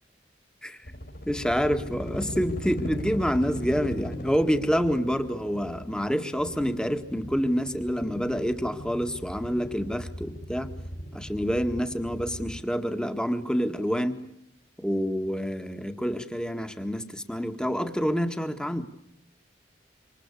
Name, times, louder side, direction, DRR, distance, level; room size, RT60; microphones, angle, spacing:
sound 1, 0.8-12.6, equal, 55° left, 5.1 m, -38 dB
voice 1, 1.3-10.7 11.1-14.2 14.8-18.8, equal, 5° left, 7 dB, 1.8 m, -27 dB
27.5 x 26.0 x 8.4 m, 0.77 s
head